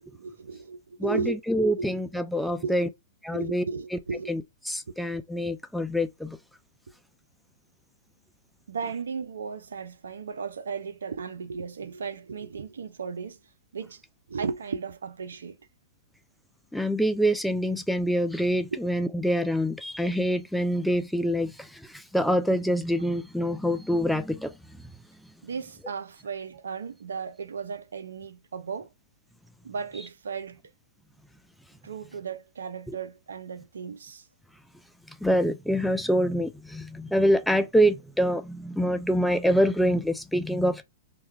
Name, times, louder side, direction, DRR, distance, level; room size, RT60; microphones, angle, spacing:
voice 1, 0.0-1.4 1.8-1.9 2.6-2.8 3.3-4.3 8.7-13.4 13.7-14.0 14.3-15.6 25.4-28.9 29.6-30.6 31.8-34.2, right 5 dB, 90° right, 0.4 m, -35 dB
voice 2, 1.0-2.9 3.2-3.6 4.3-6.4 16.7-24.5 32.9-33.0 35.2-40.8, equal, ahead, 0.3 m, -25 dB
2.3 x 2.1 x 3.1 m
hypercardioid pair, 125°, 0 cm